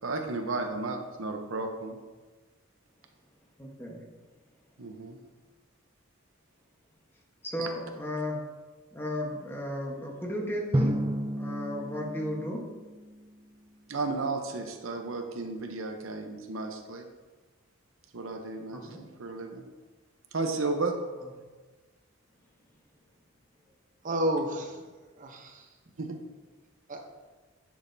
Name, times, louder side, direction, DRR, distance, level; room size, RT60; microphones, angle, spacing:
voice 1, 0.0-2.0 4.8-5.2 7.6-7.7 13.9-17.1 18.1-19.6 20.3-21.0 26.0-26.2, right 3 dB, 80° right, 5 dB, 0.8 m, -33 dB
voice 2, 3.6-4.0 7.4-8.4 8.9-11.0 11.3-12.7 18.7-19.0, left 1 dB, 10° left, -1 dB, 1.2 m, -34 dB
Drum, 10.7-13.4, right 1 dB, 20° right, 0.4 m, -31 dB
voice 3, 24.0-25.7 26.9-27.0, right 1 dB, 40° right, 3 dB, 0.8 m, -31 dB
10.0 x 6.3 x 2.7 m, 1.3 s
head